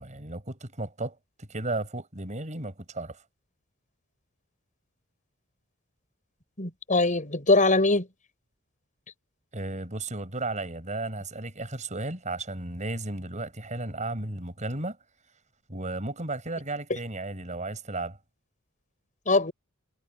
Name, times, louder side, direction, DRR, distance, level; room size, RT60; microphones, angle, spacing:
voice 1, 0.0-3.2 9.5-15.0 15.7-18.2, right 2 dB, 35° right, 5.6 m, -34 dB
voice 2, 6.6-8.1 19.3-19.5, left 2 dB, 35° left, 6.9 m, -22 dB
head